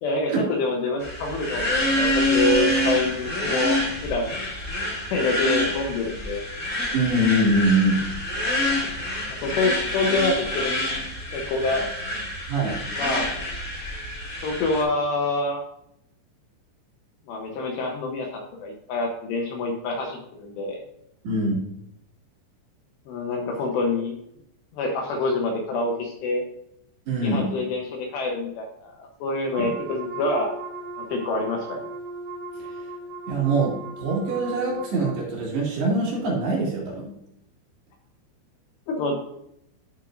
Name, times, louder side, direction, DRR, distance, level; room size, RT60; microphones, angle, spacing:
voice 1, 0.0-4.4 5.1-6.4 9.3-10.8 11.3-11.8 13.0-13.4 14.4-15.6 17.3-20.8 23.1-24.1 24.7-26.4 27.2-30.5 31.0-31.9 38.9-39.2, left 2 dB, 75° left, 1 dB, 2.7 m, -26 dB
sound 1, 1.0-14.8, left 1 dB, 20° left, 2.6 m, -27 dB
voice 2, 6.9-8.0 12.5-12.8 21.2-21.6 27.1-27.5 29.6-29.7 32.8-32.9 33.3-37.1, right 2 dB, 60° right, -4 dB, 3.9 m, -23 dB
Wind instrument woodwind instrument, 29.5-35.3, right 2 dB, 75° right, 4.3 m, -37 dB
13.0 x 6.3 x 2.6 m, 0.78 s
omnidirectional pair, 5.7 m